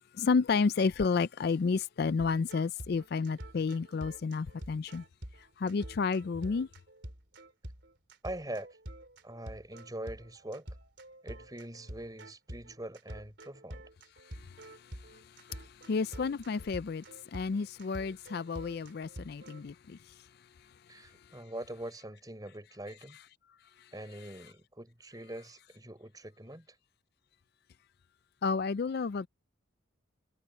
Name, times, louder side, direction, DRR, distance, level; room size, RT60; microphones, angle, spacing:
voice 1, 0.0-5.0 5.6-6.7 15.9-17.0 17.3-20.0 28.4-29.3, left 4 dB, 50° left, 0.4 m, -31 dB
sound 1, 2.2-19.6, right 1 dB, 55° right, 4.0 m, -47 dB
voice 2, 8.2-8.7 9.2-10.7 11.2-13.8 20.9-23.2 23.9-26.8, right 1 dB, 20° right, 4.0 m, -43 dB
head